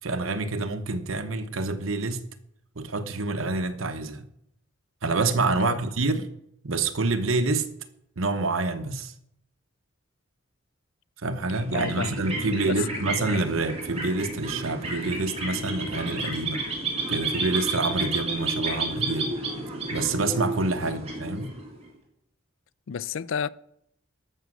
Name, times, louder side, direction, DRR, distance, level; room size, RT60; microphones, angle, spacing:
voice 1, 0.0-2.2 2.8-4.2 5.0-6.3 6.6-7.7 8.2-9.1 11.2-16.6 17.1-19.3 19.9-21.5, right 3 dB, 80° right, 1.0 m, -27 dB
sound 1, 11.5-21.8, right 2 dB, 30° right, 3.2 m, -31 dB
voice 2, 11.7-12.1 12.7-13.1 20.8-21.0 22.9-23.5, left 7 dB, 70° left, 0.4 m, -31 dB
13.5 x 6.2 x 6.3 m
head